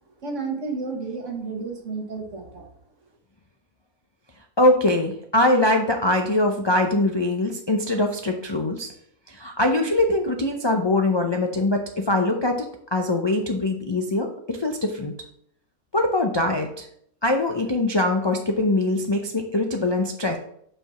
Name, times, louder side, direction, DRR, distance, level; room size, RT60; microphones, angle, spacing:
voice 1, 0.2-2.7, right 4 dB, 60° right, 1 dB, 1.7 m, -31 dB
voice 2, 4.6-8.9 9.3-15.1 15.9-16.9 17.2-20.4, left 1 dB, 45° left, 2 dB, 0.3 m, -22 dB
6.0 x 4.7 x 5.6 m, 0.68 s
omnidirectional pair, 1.5 m